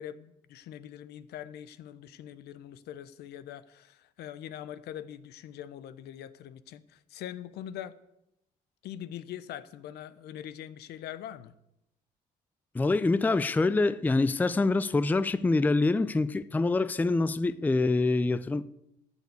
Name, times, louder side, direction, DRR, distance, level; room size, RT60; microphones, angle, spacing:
voice 1, 0.0-7.9 8.8-11.5, left 11 dB, 75° left, 0.8 m, -43 dB
voice 2, 12.7-18.7, left 3 dB, 10° left, 0.4 m, -25 dB
12.5 x 7.1 x 8.0 m
cardioid pair, 110°, 17 cm